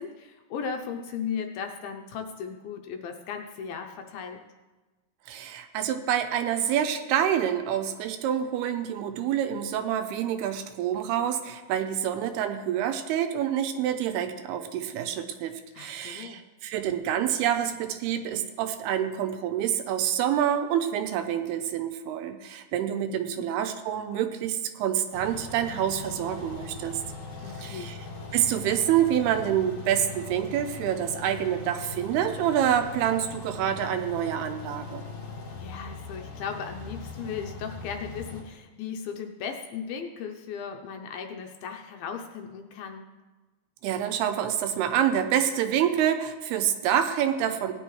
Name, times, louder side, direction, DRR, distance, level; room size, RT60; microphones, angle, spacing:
voice 1, 0.0-4.4 15.7-16.4 23.1-23.4 27.4-28.0 35.6-43.0, left 6 dB, 80° left, 4 dB, 2.3 m, -37 dB
voice 2, 5.3-27.0 27.6-28.0 28.3-35.0 43.8-47.7, right 10 dB, 80° right, 7 dB, 2.6 m, -27 dB
sound 1, 25.1-38.4, left 3 dB, 45° left, 2.2 m, -40 dB
18.0 x 10.5 x 3.1 m, 1.2 s
omnidirectional pair, 4.7 m